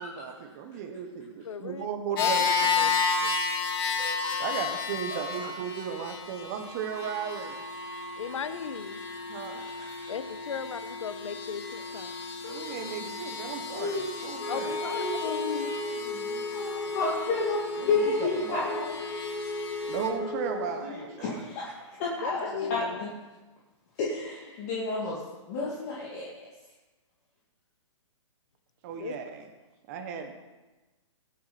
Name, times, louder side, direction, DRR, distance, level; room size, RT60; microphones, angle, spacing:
voice 1, 0.0-2.4 2.8-3.0 4.4-7.6 9.3-9.6 12.5-15.0 17.8-17.9 18.4-18.7 19.8-21.4 28.8-29.4 29.9-30.3, right 7 dB, 30° right, 5 dB, 1.4 m, -36 dB
voice 2, 1.4-1.9 2.2-2.3 2.8-2.9 3.2-3.3 8.2-9.0 10.1-12.1 14.5-15.3 22.2-23.0 29.0-29.2, left 7 dB, 75° left, 12 dB, 1.1 m, -36 dB
sound 1, 2.2-20.1, left 5 dB, 50° left, 3.0 m, -33 dB
voice 3, 4.0-4.4 5.1-5.5 9.5-9.6 10.0-10.1 12.4-12.9 13.7-14.3 15.0-18.9 20.2-20.3 20.8-23.1 24.0-25.2 25.5-26.3, left 3 dB, 30° left, -5 dB, 2.5 m, -32 dB
Wind instrument woodwind instrument, 14.4-20.8, left 2 dB, 15° left, 1.4 m, -36 dB
19.0 x 8.5 x 4.4 m, 1.1 s
hypercardioid pair, 160°, 16 cm